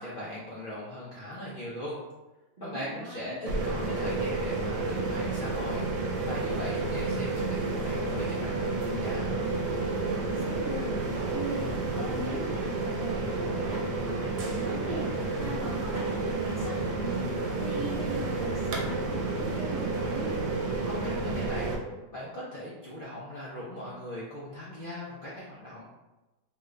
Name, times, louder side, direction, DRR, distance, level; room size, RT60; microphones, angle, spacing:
voice 1, 0.0-2.0 2.6-9.3 20.7-25.9, left 1 dB, 70° left, -7 dB, 0.5 m, -39 dB
voice 2, 2.6-3.4 9.9-20.3, right 1 dB, 40° right, -10 dB, 0.7 m, -39 dB
sound 1, 3.5-21.7, right 3 dB, 75° right, 1.2 m, -30 dB
3.1 x 2.4 x 3.1 m, 1.1 s
omnidirectional pair, 1.8 m